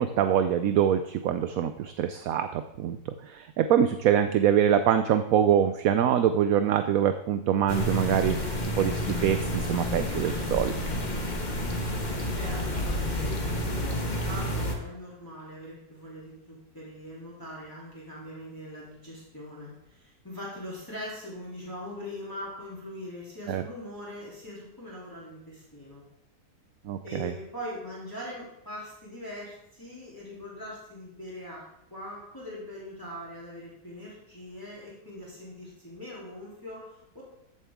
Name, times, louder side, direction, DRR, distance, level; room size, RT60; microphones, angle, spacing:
voice 1, 0.0-10.7 23.5-23.6 26.8-27.3, right 9 dB, 70° right, 9 dB, 1.0 m, -24 dB
sound 1, 7.7-14.7, left 1 dB, 30° left, 1.4 m, -30 dB
voice 2, 12.3-26.0 27.0-31.6 31.9-37.2, left 1 dB, 10° left, -7 dB, 3.0 m, -41 dB
14.0 x 7.3 x 3.6 m, 0.82 s
omnidirectional pair, 1.7 m